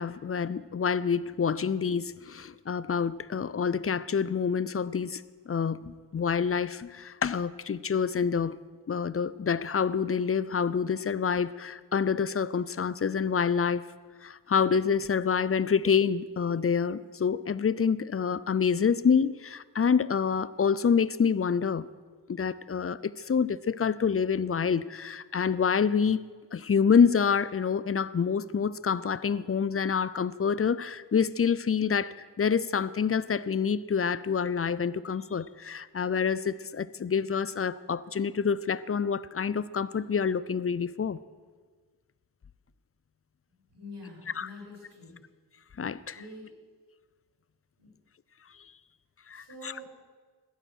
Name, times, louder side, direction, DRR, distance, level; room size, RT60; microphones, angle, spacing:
voice 1, 0.0-8.6 8.9-13.8 14.2-21.9 22.3-26.2 26.5-41.2 44.3-44.5 45.8-46.2 49.3-49.9, left 6 dB, 35° left, 0.6 m, -27 dB
voice 2, 43.7-45.2 46.1-46.5 47.8-47.9 49.3-49.9, left 2 dB, 80° right, 6.1 m, -45 dB
17.0 x 13.0 x 6.4 m
wide cardioid pair, 65°, 41 cm